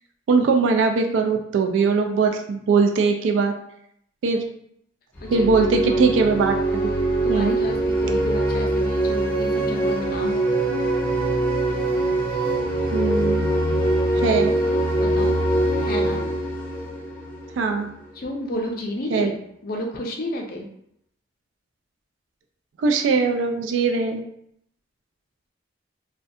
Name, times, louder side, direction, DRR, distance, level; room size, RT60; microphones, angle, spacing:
voice 1, 0.3-3.5 4.2-4.4 5.3-6.9 7.3-7.6 12.9-13.5 14.2-14.6 17.6-17.9 19.1-19.3 22.8-24.2, right 4 dB, 85° right, 5 dB, 0.3 m, -21 dB
sound 1, 5.1-17.8, right 1 dB, 10° left, 0.7 m, -23 dB
voice 2, 5.2-6.0 7.2-10.4 15.0-15.4 15.8-16.2 18.2-19.4 19.6-20.7, left 1 dB, 50° left, 2 dB, 0.5 m, -31 dB
2.3 x 2.2 x 2.6 m, 0.71 s
head